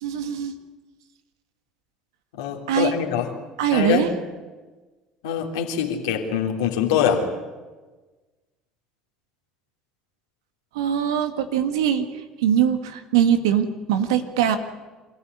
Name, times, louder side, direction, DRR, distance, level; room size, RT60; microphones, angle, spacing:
voice 1, 0.0-0.5 2.7-2.9 3.6-4.1 10.7-12.1 12.4-14.6, right 9 dB, 80° right, 9 dB, 1.8 m, -22 dB
voice 2, 2.3-3.3 3.7-4.1 5.2-7.2, left 8 dB, 80° left, 1 dB, 3.1 m, -24 dB
26.5 x 14.0 x 9.7 m, 1.3 s
hypercardioid pair, 65°, 2 cm